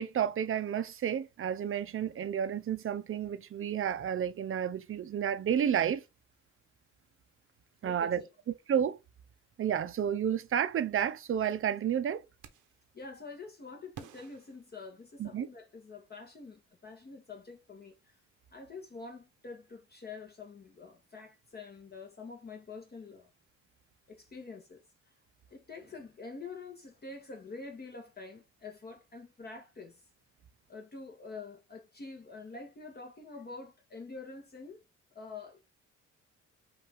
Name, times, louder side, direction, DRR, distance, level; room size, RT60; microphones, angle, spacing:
voice 1, 0.0-6.0 7.8-8.2 8.7-9.0 9.6-12.2 15.2-15.5, right 9 dB, 45° right, 0.6 m, -31 dB
voice 2, 7.8-8.3 12.9-18.2 18.5-23.3 24.1-24.8 25.5-30.0 30.7-34.8 35.1-35.6, left 4 dB, 35° left, 1.2 m, -46 dB
sound 1, 12.4-12.9 13.9-15.5, right 9 dB, 80° right, 0.9 m, -52 dB
5.5 x 2.6 x 3.4 m
cardioid pair, 90°, 30 cm